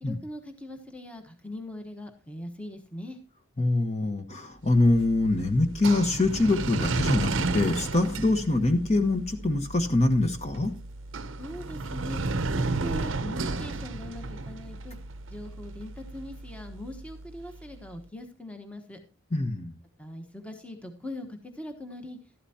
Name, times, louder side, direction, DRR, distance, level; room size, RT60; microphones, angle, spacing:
voice 1, 0.0-3.2 11.4-12.2 12.5-15.0 15.3-19.0 20.0-22.2, left 1 dB, 5° left, 4 dB, 1.2 m, -41 dB
voice 2, 3.6-10.7 19.3-19.7, left 2 dB, 30° left, 7 dB, 1.2 m, -24 dB
sound 1, 4.7-17.8, right 3 dB, 65° right, 0.7 m, -33 dB
13.0 x 12.0 x 2.9 m, 0.34 s
head